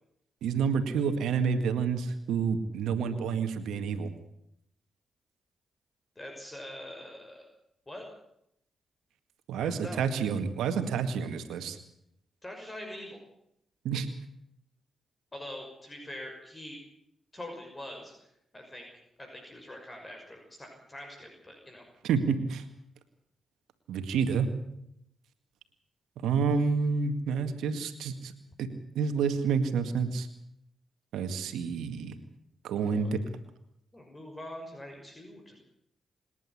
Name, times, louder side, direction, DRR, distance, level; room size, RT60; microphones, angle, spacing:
voice 1, 0.4-4.1 9.5-11.8 13.8-14.1 22.0-22.6 23.9-24.5 26.2-28.3 28.6-28.7 29.0-30.3 31.1-32.2 32.6-33.2, right 6 dB, 80° right, 8 dB, 2.0 m, -29 dB
voice 2, 6.2-7.5 7.9-8.0 9.6-10.0 12.4-13.2 15.3-16.8 17.3-18.9 19.2-21.9 32.8-33.1 33.9-35.5, left 1 dB, 25° left, 2 dB, 6.2 m, -44 dB
26.0 x 11.0 x 9.9 m, 0.76 s
hypercardioid pair, 45°, 0 cm